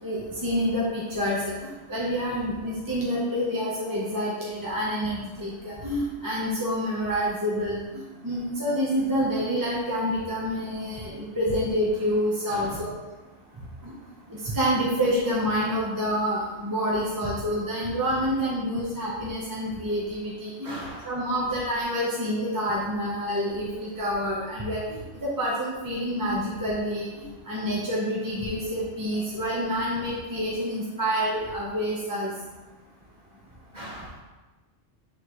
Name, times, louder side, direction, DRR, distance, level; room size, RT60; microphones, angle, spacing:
voice 1, 0.0-12.9 13.8-13.9 14.3-27.1 27.5-32.3, equal, 20° right, -6 dB, 0.9 m, -28 dB
voice 2, 12.5-12.8 20.6-21.1 33.7-34.2, right 1 dB, 35° right, -7 dB, 2.0 m, -39 dB
8.6 x 3.8 x 3.1 m, 1.2 s
omnidirectional pair, 1.2 m